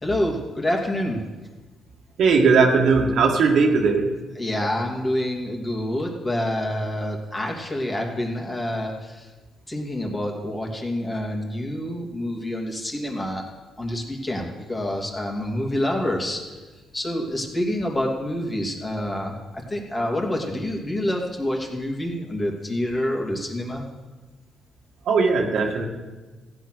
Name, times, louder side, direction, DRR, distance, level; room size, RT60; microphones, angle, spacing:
voice 1, 0.0-1.2 4.4-9.3 9.7-13.4 13.8-16.4 16.9-19.4 19.7-23.8, left 1 dB, 20° left, 0 dB, 2.7 m, -27 dB
voice 2, 2.2-4.1 25.1-25.9, right 4 dB, 70° right, 1 dB, 2.1 m, -18 dB
15.0 x 9.0 x 6.3 m, 1.2 s
cardioid pair, 90°, 0 cm